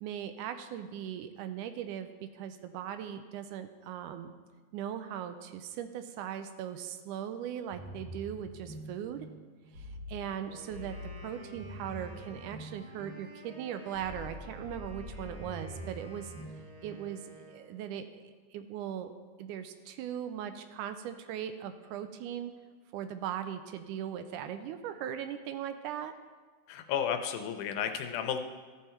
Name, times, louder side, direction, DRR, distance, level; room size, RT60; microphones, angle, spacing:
voice 1, 0.0-4.3 4.7-9.3 9.8-10.9 11.2-16.3 16.8-17.2 17.5-18.2 18.5-19.1 19.4-22.5 22.9-26.1, right 9 dB, 80° right, 9 dB, 2.0 m, -39 dB
sound 1, 7.7-17.5, left 1 dB, 40° right, 2.5 m, -46 dB
Wind instrument woodwind instrument, 10.4-18.0, right 2 dB, 55° right, 1.6 m, -52 dB
voice 2, 26.7-28.4, left 8 dB, 80° left, 7 dB, 2.0 m, -32 dB
14.0 x 5.5 x 4.3 m, 1.5 s
omnidirectional pair, 3.7 m